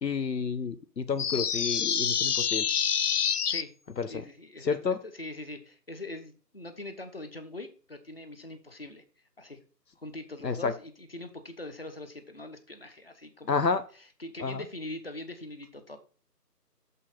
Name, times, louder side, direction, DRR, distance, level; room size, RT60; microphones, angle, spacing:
voice 1, 0.0-2.7 4.0-4.2 4.6-5.0 10.4-10.7 13.5-13.8 14.4-14.6, left 5 dB, 85° left, 11 dB, 1.1 m, -30 dB
sound 1, 1.2-3.6, left 8 dB, 70° left, 0.6 m, -27 dB
voice 2, 4.1-9.0 9.4-9.6 10.0-13.6 14.2-16.0, left 2 dB, 35° left, 8 dB, 0.9 m, -42 dB
6.5 x 5.6 x 4.1 m, 0.38 s
figure-of-eight pair, 170°, 48 cm